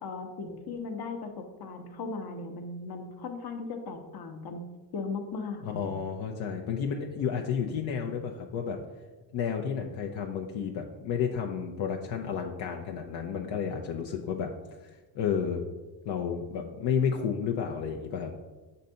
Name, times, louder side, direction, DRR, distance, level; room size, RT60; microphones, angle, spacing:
voice 1, 0.0-4.6 4.9-5.9, left 4 dB, 55° left, 5 dB, 1.0 m, -37 dB
voice 2, 5.6-8.8 9.3-14.5 14.8-14.9 15.2-15.6 16.1-18.3, left 7 dB, 80° left, 1 dB, 0.7 m, -31 dB
6.4 x 2.7 x 5.5 m, 1.2 s
cardioid pair, 90°, 45 cm